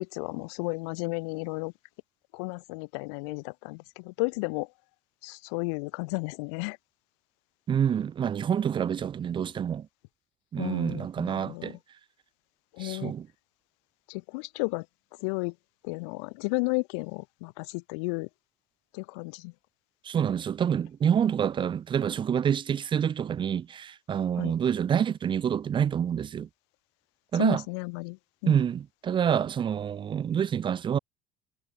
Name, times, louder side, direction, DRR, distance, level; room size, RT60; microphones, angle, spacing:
voice 1, 0.0-1.7 2.3-4.7 5.2-6.8 10.6-11.8 12.7-13.1 14.1-14.8 15.2-15.5 15.8-18.3 18.9-19.5 24.4-24.5 27.3-28.2 28.4-28.6, left 32 dB, 85° left, 1.0 m, -33 dB
voice 2, 7.7-9.9 10.5-11.8 12.8-13.3 20.0-26.5 27.3-27.6 28.5-31.0, right 8 dB, 35° right, 0.7 m, -27 dB
supercardioid pair, 95°, 14 cm